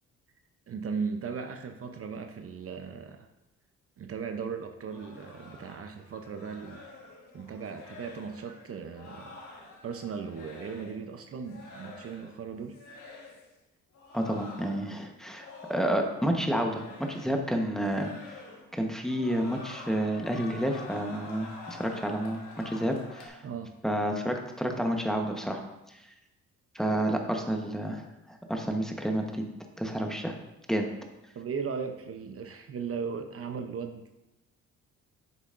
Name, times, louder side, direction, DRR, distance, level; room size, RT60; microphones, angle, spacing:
voice 1, 0.7-3.3 4.0-6.8 7.3-12.8 23.4-23.8 31.3-34.1, right 6 dB, 50° right, 6 dB, 0.7 m, -37 dB
sound 1, 4.9-11.1 11.4-12.4 12.7-13.5 13.9-16.3 16.5-17.5 17.8-18.8 19.0-23.3, left 2 dB, 80° left, 1.6 m, -47 dB
voice 2, 14.1-18.1 18.7-22.4 22.6-23.4 23.8-25.6 26.7-29.4 29.8-30.4 30.7-30.9, right 1 dB, ahead, 2 dB, 1.1 m, -30 dB
9.7 x 6.9 x 2.6 m, 0.96 s
cardioid pair, 90°, 30 cm